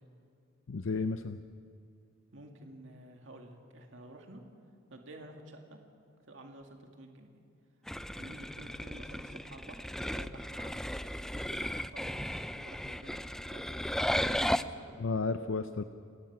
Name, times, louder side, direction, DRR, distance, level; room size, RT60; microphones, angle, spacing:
voice 1, 0.7-1.4 15.0-15.8, left 4 dB, 70° left, 10 dB, 0.6 m, -32 dB
voice 2, 2.3-4.4 4.9-5.8 6.3-7.3 8.2-10.8 11.3-13.2 13.5-15.0, right 1 dB, 65° right, 3 dB, 2.2 m, -51 dB
sound 1, 7.9-14.6, equal, ahead, 0.4 m, -35 dB
29.0 x 15.0 x 6.1 m, 2.4 s
head